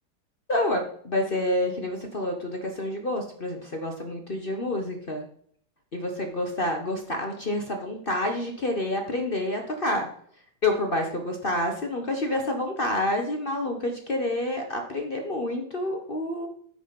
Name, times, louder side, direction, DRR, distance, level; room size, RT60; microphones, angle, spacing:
voice 1, 0.5-5.2 5.9-10.1 10.6-16.5, left 1 dB, 45° left, 4 dB, 0.7 m, -28 dB
9.4 x 5.1 x 5.3 m, 0.62 s
omnidirectional pair, 2.3 m